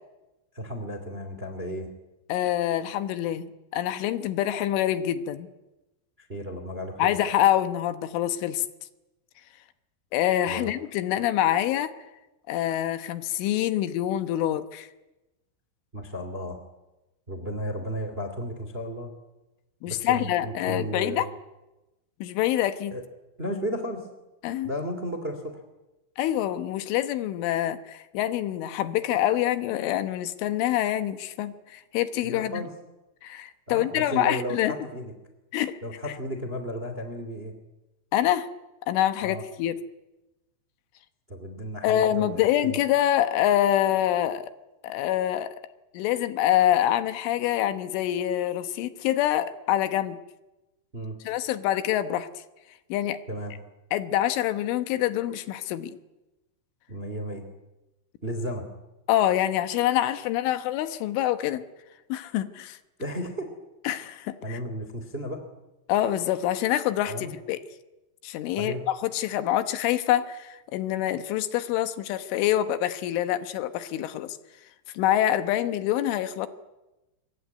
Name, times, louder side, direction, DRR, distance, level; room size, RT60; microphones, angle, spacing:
voice 1, 0.5-1.9 6.2-7.2 10.5-10.7 15.9-16.6 17.3-19.1 19.9-21.2 22.9-23.0 23.4-24.1 24.6-25.6 32.2-32.7 33.7-35.1 35.8-37.5 39.2-39.4 41.3-42.8 50.9-51.1 53.3-53.5 56.9-57.4 58.2-58.6 63.0-63.5 64.4-65.4 67.1-67.3 68.6-68.9, equal, 20° right, 7 dB, 1.7 m, -34 dB
voice 2, 2.3-5.5 7.0-8.7 10.1-11.9 12.5-14.9 19.8-21.3 22.2-22.9 24.4-24.7 26.2-32.6 33.2-34.7 35.5-35.8 38.1-38.5 38.9-39.7 41.8-44.5 44.8-45.6 46.0-50.2 51.3-52.3 52.9-53.2 53.9-56.0 59.1-61.7 62.1-62.8 63.9-64.6 65.9-67.6 68.2-68.7 69.0-74.4 75.0-76.5, left 12 dB, 80° left, 11 dB, 3.5 m, -26 dB
25.0 x 23.5 x 9.5 m, 1.0 s
omnidirectional pair, 5.7 m